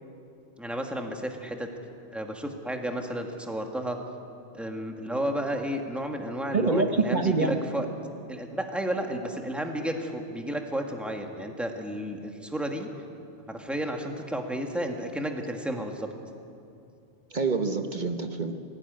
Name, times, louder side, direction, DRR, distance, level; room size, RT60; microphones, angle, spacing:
voice 1, 0.6-1.7 2.1-4.0 4.5-7.9 8.3-12.9 13.5-16.1, right 1 dB, ahead, 2 dB, 1.7 m, -32 dB
voice 2, 6.5-6.9 7.1-7.6 17.3-18.6, right 3 dB, 40° right, 5 dB, 1.1 m, -26 dB
19.0 x 16.0 x 9.4 m, 2.5 s
omnidirectional pair, 1.2 m